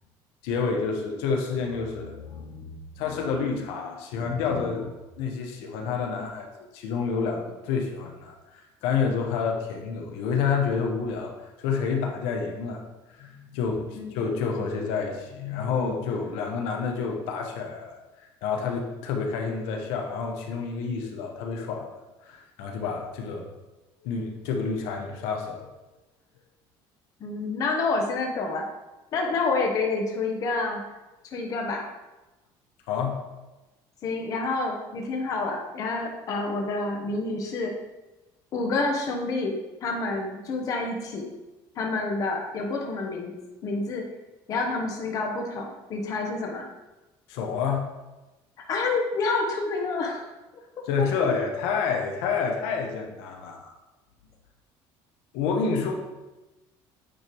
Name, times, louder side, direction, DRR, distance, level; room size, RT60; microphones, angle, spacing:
voice 1, 0.4-11.3 11.6-12.8 13.1-21.8 22.2-23.5 24.0-25.7 32.9-33.2 47.3-47.9 50.9-53.7 55.3-55.9, left 5 dB, 85° left, 1 dB, 1.1 m, -29 dB
voice 2, 13.9-14.8 27.2-28.6 29.1-30.8 31.3-31.8 34.0-37.7 38.5-41.3 41.8-43.3 43.6-44.0 44.5-46.7 48.7-50.3 51.0-51.4, left 3 dB, 40° left, 1 dB, 1.0 m, -28 dB
8.9 x 3.3 x 4.6 m, 1.1 s
cardioid pair, 165°, 10 cm